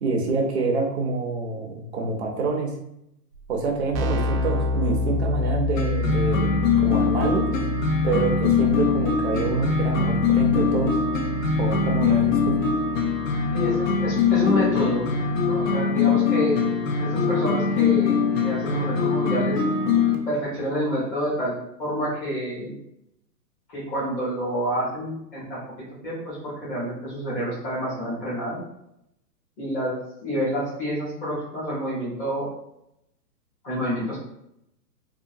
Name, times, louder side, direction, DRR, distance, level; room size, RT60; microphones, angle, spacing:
voice 1, 0.0-2.7 3.5-7.5 8.0-11.0 11.6-12.6, right 3 dB, 40° right, 1 dB, 0.5 m, -26 dB
Keyboard (musical), 3.3-3.4 3.6-14.3, left 3 dB, 90° right, 0.6 m, -30 dB
sound 1, 5.8-20.2, left 5 dB, 55° left, 0.6 m, -22 dB
voice 2, 13.5-15.1 15.4-16.5 17.0-19.6 20.3-22.7 23.7-28.6 29.6-32.5 33.6-34.2, equal, 30° left, -8 dB, 1.2 m, -28 dB
2.8 x 2.2 x 2.5 m, 0.80 s
hypercardioid pair, 150°, 50 cm